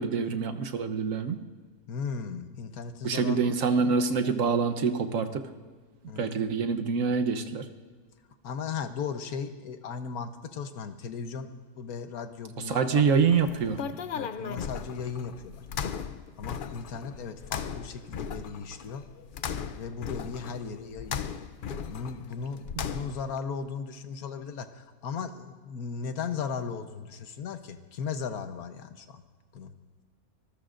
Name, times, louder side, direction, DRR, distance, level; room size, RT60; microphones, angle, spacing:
voice 1, 0.0-1.4 3.0-5.5 6.2-7.6 12.7-13.8, right 5 dB, 65° right, 6 dB, 1.3 m, -26 dB
voice 2, 1.9-3.5 6.1-6.4 8.4-11.5 11.8-13.0 14.1-15.6 16.4-19.0 19.8-21.3 21.9-29.2 29.5-29.7, left 6 dB, 80° left, 8 dB, 1.4 m, -37 dB
sound 1, 13.2-23.4, left 7 dB, 60° left, 0.5 m, -37 dB
25.5 x 20.5 x 2.5 m, 1.5 s
omnidirectional pair, 1.5 m